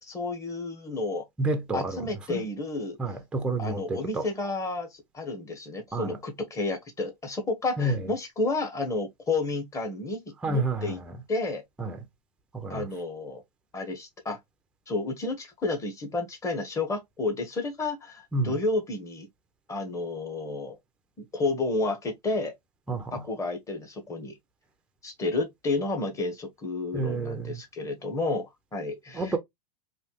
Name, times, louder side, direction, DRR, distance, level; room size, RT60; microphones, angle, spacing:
voice 1, 0.0-1.2 1.7-3.0 3.6-11.0 11.3-11.6 12.7-13.4 13.7-14.4 14.9-19.3 19.7-20.8 21.2-22.5 23.1-24.3 25.0-29.4, left 3 dB, 15° left, 1.1 m, -31 dB
voice 2, 1.4-2.0 2.3-2.4 3.0-4.2 5.9-6.1 7.8-8.0 10.4-11.0 11.8-12.0 12.5-12.9 18.3-18.5 22.9-23.1 26.9-27.6 29.1-29.4, right 2 dB, 5° right, 0.5 m, -29 dB
3.2 x 2.7 x 3.0 m
hypercardioid pair, 125°, 20 cm